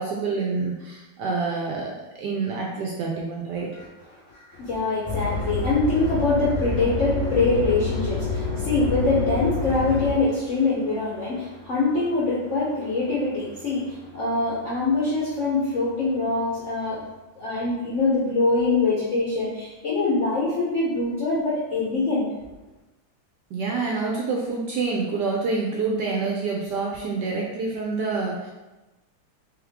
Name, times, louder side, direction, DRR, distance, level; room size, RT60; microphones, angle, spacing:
voice 1, 0.0-1.9 2.2-3.7 23.5-28.5, right 4 dB, 75° right, -2 dB, 1.0 m, -27 dB
voice 2, 4.3-17.0 17.4-22.3, left 3 dB, 65° left, -6 dB, 0.7 m, -24 dB
sound 1, 5.1-10.2, left 3 dB, 25° left, 0.6 m, -27 dB
3.5 x 3.4 x 3.5 m, 1.1 s
omnidirectional pair, 2.3 m